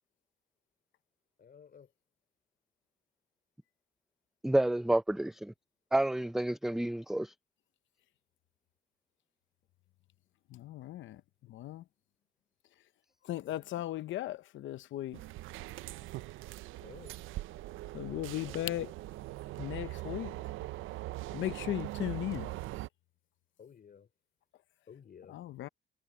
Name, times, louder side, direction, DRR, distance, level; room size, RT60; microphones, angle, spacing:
voice 1, 1.4-1.9 13.4-13.7 16.8-17.1 18.4-18.6 23.6-24.1 24.9-25.4, left 7 dB, 50° left, 3.3 m, -54 dB
voice 2, 4.4-5.5 5.9-7.3, right 1 dB, ahead, 0.4 m, -29 dB
voice 3, 10.5-11.8 13.2-15.2 17.9-18.9 19.6-20.3 21.3-22.5 25.3-25.7, left 14 dB, 75° left, 0.7 m, -37 dB
sound 1, 15.1-22.9, right 17 dB, 85° right, 0.5 m, -41 dB
cardioid pair, 90°, 20 cm